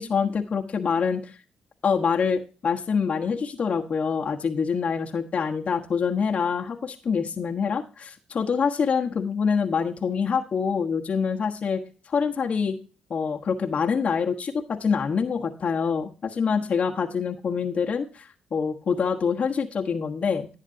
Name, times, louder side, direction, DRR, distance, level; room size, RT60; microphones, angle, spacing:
voice 1, 0.0-1.3 1.8-11.8 12.1-12.8 13.1-20.5, left 6 dB, 50° left, 2 dB, 1.3 m, -25 dB
11.0 x 9.8 x 2.8 m, 0.35 s
cardioid pair, 75°, 3 cm